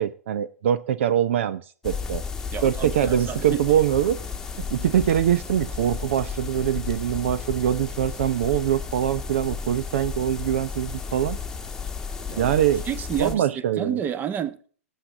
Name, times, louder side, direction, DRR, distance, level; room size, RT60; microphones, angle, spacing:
voice 1, 0.0-2.2 2.6-4.2 4.6-11.4 12.4-12.8 13.2-14.0, right 10 dB, 55° right, 0.7 m, -23 dB
sound 1, 1.8-13.3, left 5 dB, 5° left, 1.4 m, -33 dB
voice 2, 2.5-3.6 12.3-12.5 12.9-13.5 13.8-14.7, right 9 dB, 20° right, 1.1 m, -30 dB
18.5 x 8.3 x 3.6 m
figure-of-eight pair, 110°, 8 cm